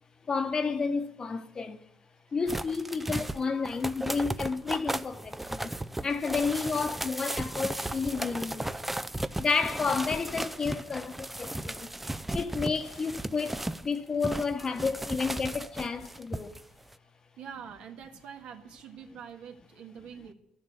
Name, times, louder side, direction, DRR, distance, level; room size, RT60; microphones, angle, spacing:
voice 1, 0.3-1.8 2.3-5.7 6.0-8.8 9.4-11.9 12.3-16.6, left 4 dB, 35° left, 1.1 m, -31 dB
sound 1, 2.5-13.9 14.2-16.6 16.9-17.0, right 1 dB, 10° right, 0.5 m, -35 dB
voice 2, 17.4-20.3, right 7 dB, 70° right, 1.9 m, -45 dB
12.5 x 7.3 x 9.1 m
supercardioid pair, 85°, 2 cm